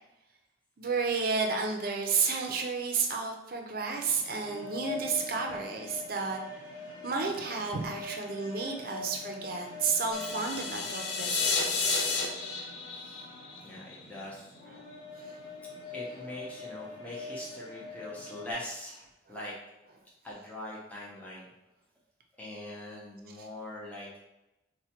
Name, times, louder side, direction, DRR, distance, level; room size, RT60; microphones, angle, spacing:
voice 1, 0.8-6.4 7.0-11.4 11.8-12.0 14.7-14.8, right 5 dB, 50° right, 2 dB, 0.5 m, -31 dB
sound 1, 3.9-18.5, left 3 dB, 80° left, 1.1 m, -44 dB
sound 2, 10.1-14.2, left 4 dB, 60° left, 0.4 m, -31 dB
voice 2, 12.9-13.2 13.6-14.5 15.9-19.0 19.3-19.5 20.2-21.5 22.4-24.2, left 1 dB, 10° left, -6 dB, 0.6 m, -42 dB
4.2 x 2.2 x 2.8 m, 0.95 s
head